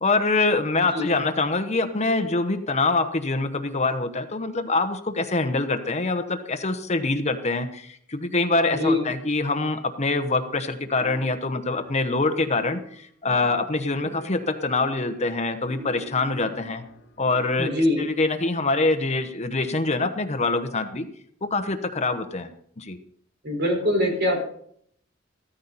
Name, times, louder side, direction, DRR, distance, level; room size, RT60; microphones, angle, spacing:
voice 1, 0.0-16.8 17.2-21.1 21.4-22.5 22.8-23.0, left 3 dB, 35° left, 8 dB, 1.0 m, -25 dB
voice 2, 8.7-9.0 17.6-18.1 23.4-24.4, left 1 dB, 60° right, 2 dB, 4.9 m, -23 dB
sound 1, 10.8-12.2 12.4-17.7, left 1 dB, 65° left, 2.5 m, -45 dB
14.5 x 14.0 x 4.1 m, 0.63 s
head